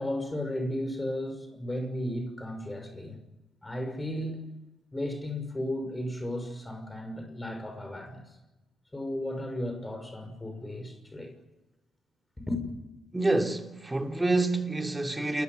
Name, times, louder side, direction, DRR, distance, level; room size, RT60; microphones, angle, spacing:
voice 1, 0.0-3.2 3.6-4.5 4.9-8.4 8.9-11.3 12.5-12.7, left 1 dB, 20° left, 6.1 m, -34 dB
voice 2, 13.1-15.4, right 2 dB, 20° right, 3.2 m, -27 dB
28.0 x 15.5 x 9.6 m
supercardioid pair, 55°, 0 cm